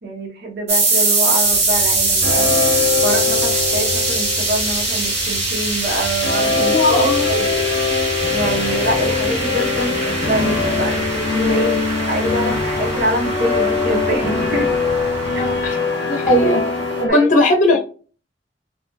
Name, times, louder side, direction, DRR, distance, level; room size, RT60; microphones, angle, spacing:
voice 1, 0.0-2.6 3.0-6.8 7.1-7.5 8.3-14.8 15.3-15.4 17.1-17.3, right 1 dB, 60° right, 0.7 m, -25 dB
sound 1, 0.7-17.0, right 2 dB, 40° right, 1.4 m, -23 dB
sound 2, 1.4-15.7, equal, 10° right, 0.5 m, -35 dB
sound 3, 2.2-5.4 6.2-17.1, left 5 dB, 90° left, 0.6 m, -22 dB
voice 2, 6.6-7.3 15.4-15.8 16.1-16.6 17.0-17.8, left 1 dB, 45° left, 0.8 m, -17 dB
2.6 x 2.2 x 2.5 m
head